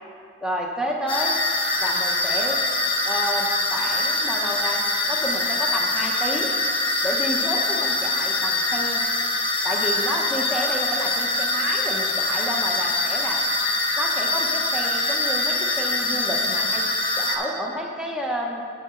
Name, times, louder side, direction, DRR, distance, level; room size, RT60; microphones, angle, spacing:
voice 1, 0.4-1.4 1.8-2.6 3.0-4.8 5.1-6.5 7.0-9.0 9.6-13.4 14.0-16.8 17.2-18.6, equal, 5° right, -1 dB, 0.8 m, -30 dB
sound 1, 1.1-17.4, left 2 dB, 30° left, 0.9 m, -24 dB
9.8 x 7.5 x 3.7 m, 2.3 s
head